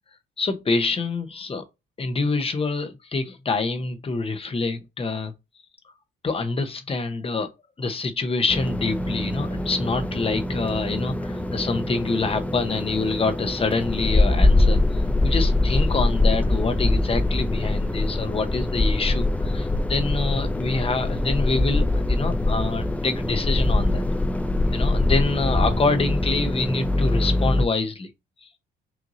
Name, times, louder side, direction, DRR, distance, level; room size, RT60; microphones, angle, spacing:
voice 1, 0.4-1.6 2.0-5.3 6.2-7.5 7.8-24.0 24.7-28.1 28.4-28.5, left 3 dB, 30° left, 0.9 m, -26 dB
sound 1, 8.5-27.7, left 2 dB, 5° left, 0.4 m, -23 dB
5.8 x 2.7 x 2.6 m
cardioid pair, 90°, 20 cm